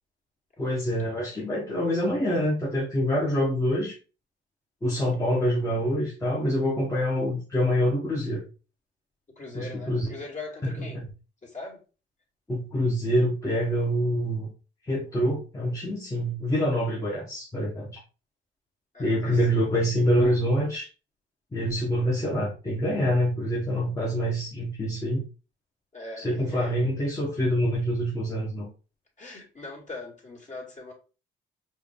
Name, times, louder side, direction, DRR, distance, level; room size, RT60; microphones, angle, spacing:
voice 1, 0.6-3.9 4.8-8.5 9.5-10.1 10.6-11.0 12.5-14.5 14.9-17.9 19.0-20.9 21.5-25.2 26.2-28.7, equal, 15° left, -5 dB, 1.4 m, -26 dB
voice 2, 9.4-11.0 11.4-11.8 18.9-19.4 25.9-26.7 29.2-30.9, left 3 dB, 40° left, -2 dB, 2.6 m, -41 dB
4.9 x 2.8 x 3.5 m, 0.33 s
cardioid pair, 90°, 20 cm